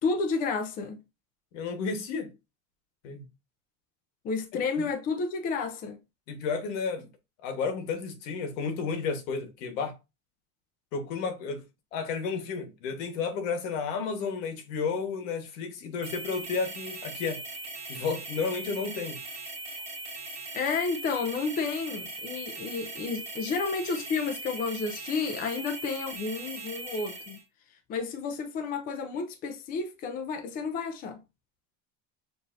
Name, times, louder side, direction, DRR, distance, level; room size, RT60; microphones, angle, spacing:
voice 1, 0.0-1.0 4.2-6.0 20.5-27.4 27.9-31.2, left 4 dB, 25° left, 0.5 m, -31 dB
voice 2, 1.5-2.3 3.0-3.2 4.8-4.9 6.3-7.1 7.4-10.0 10.9-11.6 11.9-17.4 17.9-19.2, left 5 dB, 85° left, 1.3 m, -32 dB
sound 1, 16.0-27.4, right 2 dB, 15° right, 1.1 m, -40 dB
6.7 x 2.7 x 2.5 m
cardioid pair, 170°, 37 cm